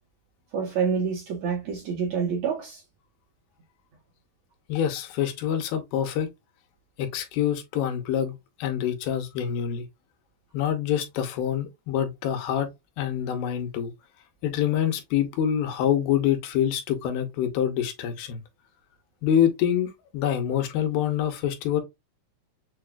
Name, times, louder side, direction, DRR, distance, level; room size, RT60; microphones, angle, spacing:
voice 1, 0.5-2.8, right 6 dB, 65° right, 1.8 m, -27 dB
voice 2, 4.7-6.3 7.0-9.9 10.5-12.7 13.0-13.9 14.4-18.4 19.2-21.8, left 9 dB, 85° left, 2.6 m, -26 dB
6.7 x 2.3 x 2.3 m
omnidirectional pair, 4.2 m